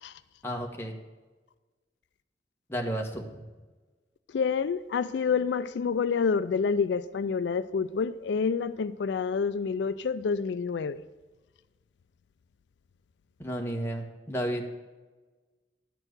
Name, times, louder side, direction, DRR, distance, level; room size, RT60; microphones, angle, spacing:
voice 1, 0.4-0.9 2.7-3.4 13.4-14.7, right 1 dB, 15° left, 1.3 m, -32 dB
voice 2, 4.3-11.0, left 5 dB, 80° left, 0.4 m, -28 dB
11.0 x 4.6 x 7.8 m
head